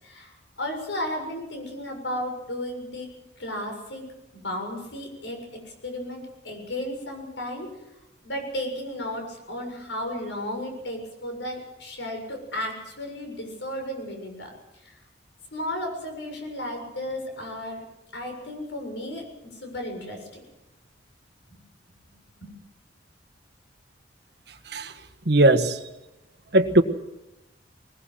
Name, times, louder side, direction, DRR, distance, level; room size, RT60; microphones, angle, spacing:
voice 1, 0.0-3.1 3.4-4.1 4.3-5.4 5.8-7.8 8.2-14.5 14.8-15.0 15.5-17.8 18.1-20.4 22.1-22.5, left 1 dB, 75° left, 3 dB, 7.0 m, -34 dB
voice 2, 25.3-25.8 26.5-26.8, right 1 dB, 60° right, 9 dB, 1.5 m, -18 dB
20.5 x 20.5 x 7.8 m, 0.96 s
head